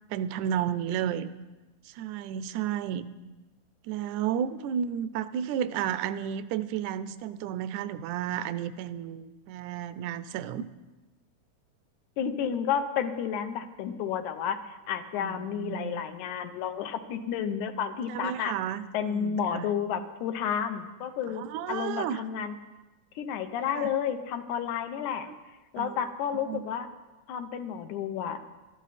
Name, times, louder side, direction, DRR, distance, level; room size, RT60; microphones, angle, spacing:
voice 1, 0.1-1.3 1.9-3.1 3.8-10.7 15.2-16.0 18.1-19.7 21.3-22.2 23.7-23.9 25.8-26.1 26.5-26.6, right 9 dB, 85° right, 14 dB, 2.0 m, -32 dB
voice 2, 12.2-18.6 18.9-21.4 21.7-22.5 23.2-25.3 25.7-26.9 27.3-28.4, left 8 dB, 85° left, 9 dB, 2.4 m, -31 dB
18.5 x 13.0 x 4.2 m, 1.2 s
omnidirectional pair, 3.4 m